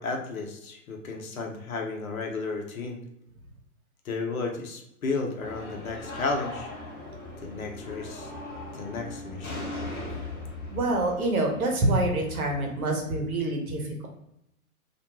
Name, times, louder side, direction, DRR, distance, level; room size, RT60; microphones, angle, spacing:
voice 1, 0.0-3.0 4.0-6.7 7.4-8.3 8.7-9.7, left 3 dB, 70° left, 2 dB, 0.8 m, -33 dB
sound 1, 5.4-12.8, left 2 dB, 25° left, 1.0 m, -39 dB
voice 2, 10.7-13.9, right 2 dB, 75° right, 1 dB, 0.9 m, -26 dB
2.4 x 2.2 x 2.9 m, 0.79 s
figure-of-eight pair, 115°, 43 cm